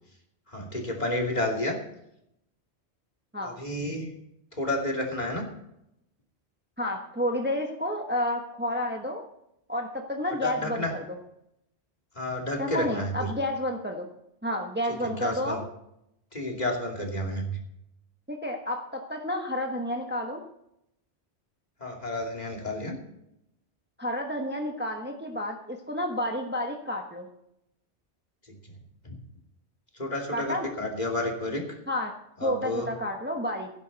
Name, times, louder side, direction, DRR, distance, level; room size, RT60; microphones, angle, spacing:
voice 1, 0.5-1.8 3.4-4.1 4.5-5.4 10.4-10.9 12.1-13.3 15.0-15.6 16.3-17.6 21.8-23.0 29.0-29.2 30.0-31.8 32.4-32.9, left 1 dB, 40° left, 0 dB, 2.8 m, -30 dB
voice 2, 6.8-9.2 9.7-11.0 12.6-14.1 14.4-15.6 18.3-20.4 24.0-27.3 30.3-30.7 31.9-32.1 32.4-33.7, left 1 dB, 10° right, 3 dB, 1.1 m, -30 dB
17.0 x 10.5 x 4.1 m, 0.80 s
omnidirectional pair, 1.1 m